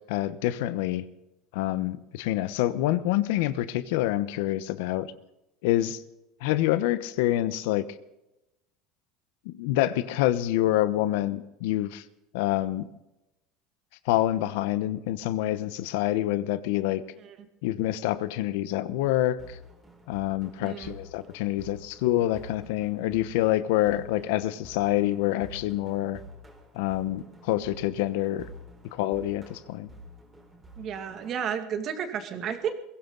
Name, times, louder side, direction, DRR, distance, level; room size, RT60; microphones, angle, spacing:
voice 1, 0.1-1.0 1.5-5.1 5.6-6.0 6.4-7.9 9.4-12.0 12.3-12.9 14.1-17.0 17.6-19.6 20.1-26.2 26.7-28.4 28.9-29.9, left 14 dB, 80° left, 14 dB, 1.0 m, -27 dB
sound 1, 19.4-31.4, equal, 15° right, 4.3 m, -49 dB
voice 2, 20.6-20.9 30.8-32.7, right 8 dB, 40° right, 7 dB, 2.4 m, -32 dB
22.0 x 16.0 x 4.0 m, 0.92 s
supercardioid pair, 135°, 0 cm